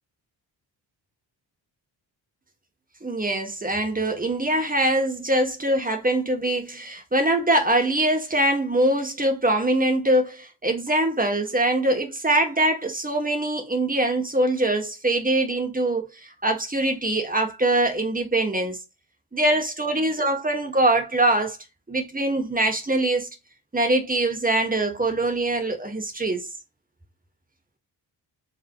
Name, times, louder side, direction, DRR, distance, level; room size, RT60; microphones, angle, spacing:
voice 1, 3.0-18.8 19.3-21.6 21.9-23.3 23.7-26.5, right 1 dB, 20° right, 2.0 m, -23 dB
8.2 x 3.8 x 3.2 m
cardioid pair, 65°, 45 cm